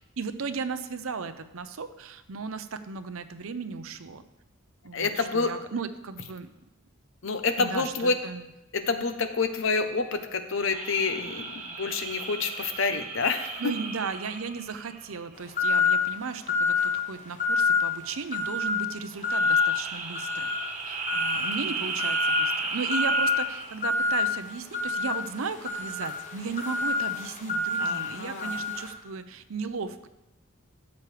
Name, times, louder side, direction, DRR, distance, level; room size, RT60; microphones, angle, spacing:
voice 1, 0.0-4.2 4.8-6.5 7.6-8.5 13.6-30.1, right 5 dB, 85° right, 10 dB, 0.7 m, -36 dB
voice 2, 4.9-5.5 7.2-8.2 8.7-13.6 21.3-21.5 27.8-28.5, left 4 dB, 65° left, 8 dB, 0.8 m, -28 dB
sound 1, 10.6-15.3 19.2-23.9, right 4 dB, 35° right, 1.2 m, -35 dB
sound 2, 15.6-16.1 16.5-16.9 17.4-17.9 18.3-18.8 19.2-19.7 20.1-20.6 21.1-21.5 22.0-22.4 22.9-23.3 23.8-24.2 24.7-28.9, left 3 dB, 35° left, 1.1 m, -26 dB
13.0 x 8.1 x 3.4 m, 0.94 s
head